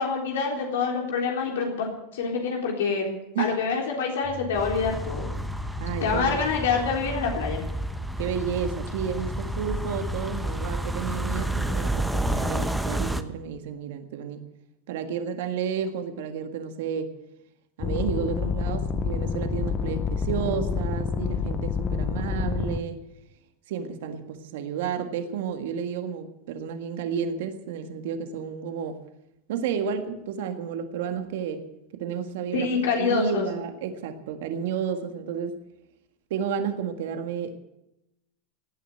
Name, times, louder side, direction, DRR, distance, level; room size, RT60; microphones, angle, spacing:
voice 1, 0.0-3.1 3.4-5.3 6.0-7.6 32.5-33.4, left 5 dB, 85° left, 0 dB, 3.8 m, -26 dB
sound 1, 4.2-12.6, left 6 dB, 50° left, 3.9 m, -39 dB
sound 2, 4.5-13.2, right 2 dB, 5° right, 1.1 m, -30 dB
voice 2, 5.8-6.6 8.2-14.5 14.9-17.1 17.8-23.0 23.7-29.0 29.5-31.6 31.9-32.7 33.0-35.6 36.3-37.6, right 7 dB, 75° right, 7 dB, 1.7 m, -31 dB
sound 3, 17.8-22.8, left 5 dB, 30° left, 1.0 m, -28 dB
18.0 x 9.4 x 7.9 m, 0.89 s
supercardioid pair, 115°, 0 cm